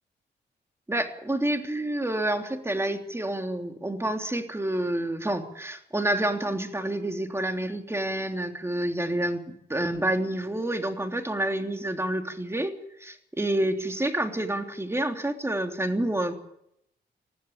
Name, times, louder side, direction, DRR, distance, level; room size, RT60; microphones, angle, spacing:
voice 1, 0.9-9.4 9.7-12.7 13.0-16.3, right 1 dB, 15° right, 4 dB, 3.3 m, -28 dB
20.5 x 14.5 x 9.0 m, 0.77 s
cardioid pair, 60°, 18 cm